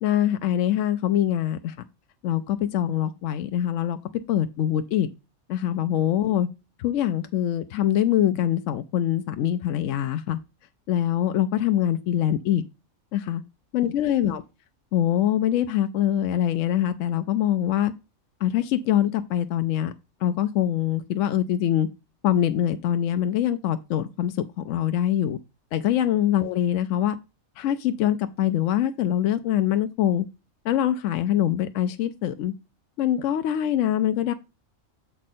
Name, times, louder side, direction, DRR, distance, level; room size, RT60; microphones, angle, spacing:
voice 1, 0.0-1.9 2.2-4.0 4.3-5.1 5.5-6.5 6.8-10.4 10.9-12.6 13.1-13.4 13.7-14.4 14.9-17.9 18.4-19.9 20.2-21.9 22.2-25.4 25.7-27.2 27.6-30.3 30.6-32.5 33.0-34.3, left 11 dB, 70° left, 0.9 m, -24 dB
7.5 x 4.5 x 4.2 m
omnidirectional pair, 1.4 m